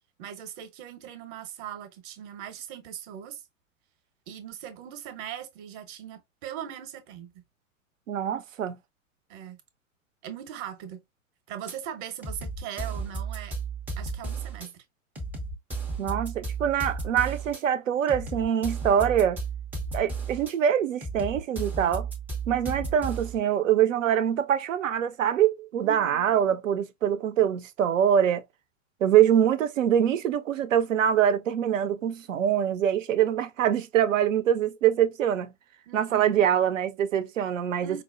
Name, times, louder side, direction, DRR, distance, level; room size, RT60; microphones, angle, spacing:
voice 1, 0.2-3.4 4.3-7.4 9.3-9.6 10.2-11.0 11.5-13.5 14.0-14.8 25.8-26.3 35.9-36.4 37.8-38.0, right 10 dB, 40° right, 0.8 m, -40 dB
voice 2, 8.1-8.8 16.0-19.4 19.9-22.1 22.5-28.4 29.0-35.5 35.9-38.0, right 9 dB, 70° right, 0.6 m, -24 dB
sound 1, 11.7-11.8 12.2-14.7 15.1-17.6 18.1-20.5 21.0-23.4, right 4 dB, 5° right, 0.4 m, -34 dB
4.7 x 2.0 x 2.4 m
figure-of-eight pair, 100°, 40 cm